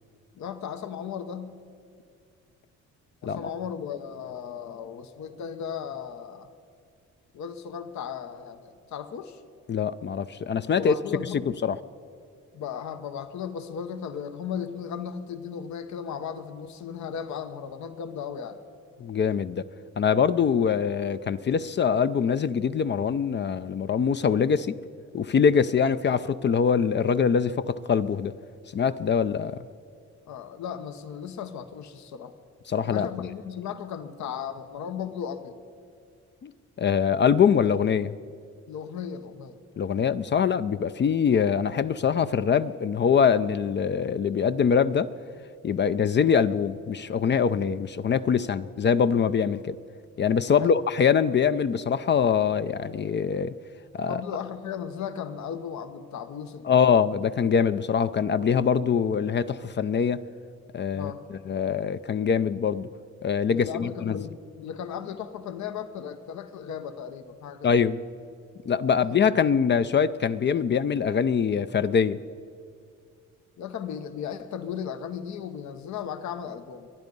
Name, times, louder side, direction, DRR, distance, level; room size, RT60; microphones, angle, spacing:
voice 1, 0.3-1.6 3.2-6.5 7.3-9.4 10.7-11.5 12.5-18.6 25.7-25.8 30.3-32.3 32.8-35.6 38.7-39.6 50.5-50.7 54.1-56.8 60.9-61.2 63.5-67.7 69.0-69.2 73.6-76.9, left 8 dB, 70° left, 10 dB, 1.0 m, -36 dB
voice 2, 9.7-10.9 11.5-11.8 19.0-19.7 20.0-24.7 25.1-28.3 28.7-29.6 32.7-33.3 36.4-36.5 36.8-38.1 39.8-45.1 45.6-49.8 50.2-53.5 53.9-54.2 56.6-60.2 60.7-61.1 61.5-62.9 63.2-64.2 67.6-68.0 68.7-72.2, left 7 dB, 35° left, 13 dB, 0.5 m, -23 dB
24.5 x 9.6 x 5.3 m, 2.2 s
cardioid pair, 90°, 30 cm